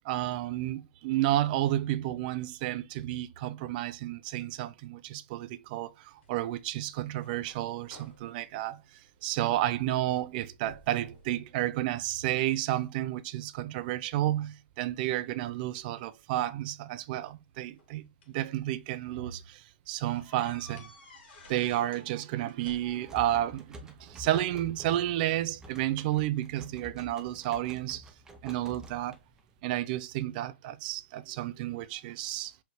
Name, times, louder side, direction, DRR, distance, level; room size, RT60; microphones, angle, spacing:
voice 1, 0.0-8.8 9.2-20.9 21.5-28.1 28.4-29.2 29.6-32.5, right 14 dB, 50° right, 0.4 m, -31 dB
sound 1, 6.2-9.6 10.0-10.4 10.7-11.3 11.8-12.5 13.1-14.5 15.7-15.8 17.0-18.4 19.0-19.1 19.4-19.5 20.1-22.1 22.4-23.2, left 3 dB, 65° left, 1.9 m, -55 dB
sound 2, 22.8-29.6, equal, 10° right, 0.6 m, -49 dB
4.7 x 3.2 x 2.9 m
hypercardioid pair, 130°, 6 cm